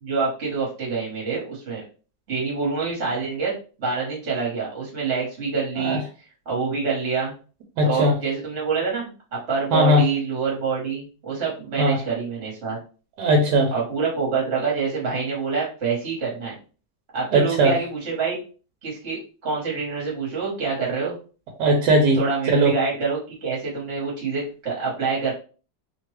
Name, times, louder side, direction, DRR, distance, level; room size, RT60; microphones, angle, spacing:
voice 1, 0.0-1.8 2.3-3.5 3.8-6.0 6.4-7.3 7.8-12.8 13.7-16.6 17.1-18.4 18.8-21.1 22.1-25.3, right 5 dB, 45° right, -4 dB, 1.3 m, -26 dB
voice 2, 7.8-8.1 9.7-10.0 11.8-12.0 13.2-13.7 17.3-17.7 21.6-22.2 22.5-22.7, right 1 dB, 75° right, 1 dB, 1.2 m, -18 dB
3.0 x 2.2 x 3.1 m, 0.36 s
omnidirectional pair, 1.9 m